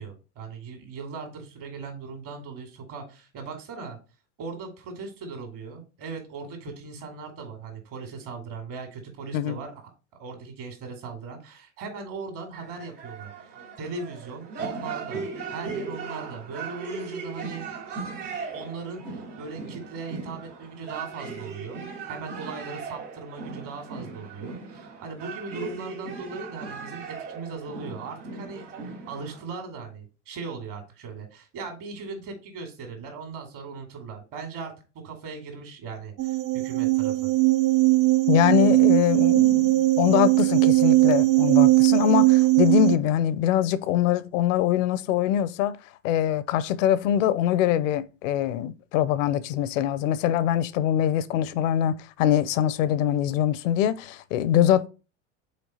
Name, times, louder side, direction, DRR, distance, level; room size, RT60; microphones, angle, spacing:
voice 1, 0.0-4.0 4.4-9.9 10.2-17.6 18.5-21.8 22.1-28.6 29.1-34.7 35.0-37.3, right 4 dB, 60° right, 2.5 m, -38 dB
sound 1, 12.5-29.4, right 5 dB, 85° right, 2.6 m, -38 dB
sound 2, 36.2-43.0, right 20 dB, 40° right, 0.4 m, -19 dB
voice 2, 38.3-45.8 46.0-54.9, left 11 dB, 80° left, 0.7 m, -23 dB
5.2 x 4.4 x 4.1 m
hypercardioid pair, 90°, 37 cm